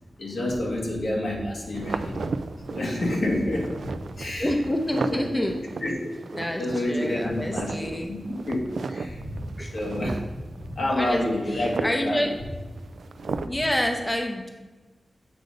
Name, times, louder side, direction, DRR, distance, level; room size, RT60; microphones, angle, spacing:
voice 1, 0.2-2.2 2.7-3.9 4.1-4.5 5.1-5.2 5.8-5.9 6.6-8.2 8.5-8.6 8.9-9.4 9.7-10.2 10.6-12.2 13.3-13.4, left 1 dB, 80° left, -3 dB, 2.0 m, -28 dB
sound 1, 1.7-13.5, right 4 dB, 80° right, 0.3 m, -36 dB
voice 2, 4.4-5.6 6.3-8.1 9.6-9.7 10.9-11.2 11.5-12.3 13.4-14.5, left 1 dB, 15° left, 3 dB, 0.6 m, -28 dB
8.3 x 5.2 x 3.9 m, 1.2 s
wide cardioid pair, 140°, 0 cm